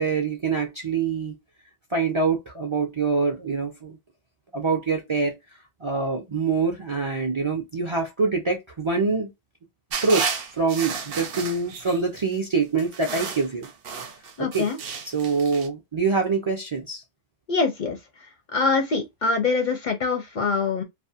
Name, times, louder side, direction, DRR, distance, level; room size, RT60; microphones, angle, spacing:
voice 1, 0.0-1.4 1.9-4.0 4.5-5.4 5.8-9.3 10.0-13.7 14.4-14.7 15.0-17.0, right 4 dB, 40° right, 0.4 m, -25 dB
sound 1, 9.9-12.2 12.8-15.7, right 6 dB, 65° right, 0.7 m, -32 dB
voice 2, 14.4-14.8 17.5-18.0 18.5-20.8, left 4 dB, 55° left, 0.6 m, -24 dB
2.4 x 2.2 x 2.6 m
omnidirectional pair, 1.1 m